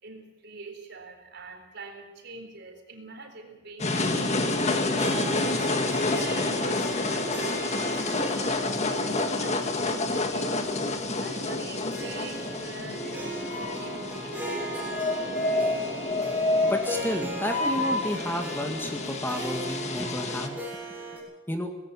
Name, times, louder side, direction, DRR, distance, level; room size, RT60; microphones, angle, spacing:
voice 1, 0.0-8.1 8.8-14.7 15.1-16.7, right 3 dB, 60° right, 5 dB, 4.0 m, -44 dB
sound 1, 3.8-20.5, left 2 dB, 35° left, 1.9 m, -28 dB
Harp, 4.7-21.2, right 1 dB, 10° right, 7.4 m, -39 dB
voice 2, 16.6-20.6 21.5-21.7, equal, 10° left, 4 dB, 2.0 m, -31 dB
19.0 x 16.5 x 8.4 m, 0.98 s
head